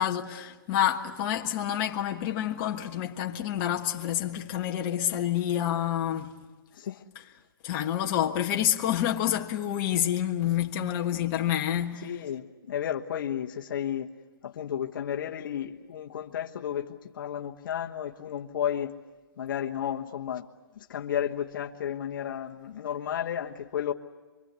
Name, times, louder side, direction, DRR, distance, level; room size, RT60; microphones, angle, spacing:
voice 1, 0.0-6.3 7.6-12.1, left 11 dB, 35° left, 1.5 m, -28 dB
voice 2, 6.7-7.0 12.0-14.1 14.4-18.9 19.4-20.4 20.7-23.9, left 9 dB, 60° left, 1.3 m, -33 dB
25.5 x 24.0 x 8.3 m
hypercardioid pair, 150°, 12 cm